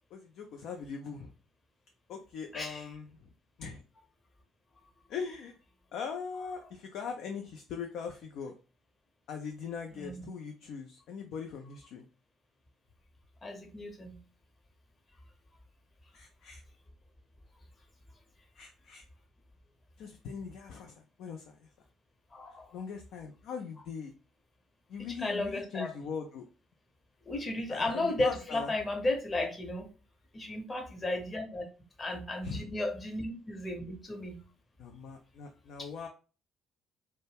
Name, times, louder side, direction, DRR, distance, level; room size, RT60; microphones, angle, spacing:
voice 1, 0.1-1.3 2.1-3.1 3.6-3.8 5.1-5.6 5.9-8.5 9.3-12.1 16.1-16.6 18.6-19.0 20.0-21.5 22.7-24.1 24.9-26.4 27.7-28.7 32.4-32.6 34.8-36.1, left 6 dB, 60° left, 3 dB, 0.3 m, -40 dB
voice 2, 2.5-2.8 9.9-10.2 13.4-14.2 22.3-22.7 25.2-25.9 27.2-29.9 30.3-31.6 32.0-34.4 35.8-35.9, left 2 dB, 25° left, 3 dB, 0.8 m, -34 dB
2.2 x 2.0 x 3.2 m, 0.34 s
figure-of-eight pair, 50°, 0 cm